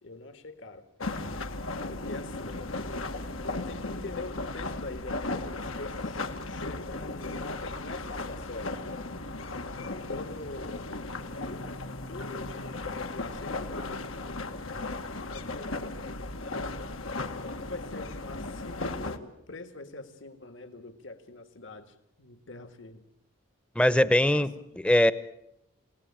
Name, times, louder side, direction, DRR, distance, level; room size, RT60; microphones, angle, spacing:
voice 1, 0.0-0.9 1.9-2.7 3.7-8.8 9.8-10.9 11.5-14.0 15.1-15.9 16.4-16.7 17.5-23.0 24.3-24.7, left 2 dB, 65° left, 9 dB, 2.0 m, -44 dB
sound 1, 1.0-19.2, left 2 dB, 85° left, 2.0 m, -36 dB
voice 2, 23.7-25.1, left 1 dB, 5° left, 14 dB, 0.9 m, -22 dB
29.0 x 18.0 x 8.9 m, 0.80 s
head